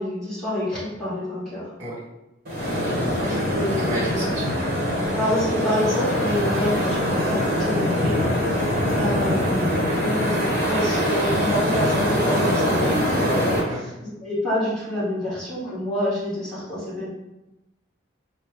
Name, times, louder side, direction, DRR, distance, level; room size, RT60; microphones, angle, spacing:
voice 1, 0.0-1.7 3.2-4.2 5.1-8.2 8.4-8.6 8.9-13.8 14.2-17.1, equal, ahead, -12 dB, 1.5 m, -27 dB
sound 1, 2.4-13.6, equal, 45° right, 1.0 m, -23 dB
voice 2, 2.7-4.7 13.6-13.8, right 1 dB, 20° right, -9 dB, 1.2 m, -33 dB
3.2 x 2.2 x 3.5 m, 0.94 s
head